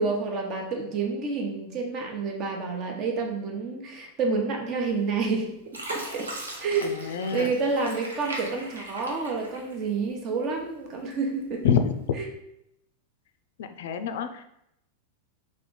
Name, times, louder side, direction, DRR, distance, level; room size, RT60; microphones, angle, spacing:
voice 1, 0.0-5.5 5.9-6.3 6.6-11.7 12.1-12.3, right 4 dB, 35° right, 1 dB, 0.9 m, -29 dB
Fill (with liquid), 5.0-5.3 5.7-10.1 10.6-11.4 11.9-12.1, right 1 dB, 75° right, 0.8 m, -39 dB
voice 2, 6.8-7.5 11.6-11.9 13.6-14.4, left 7 dB, 55° left, 8 dB, 0.4 m, -26 dB
3.4 x 3.4 x 3.9 m, 0.79 s
figure-of-eight pair, 90°, 0 cm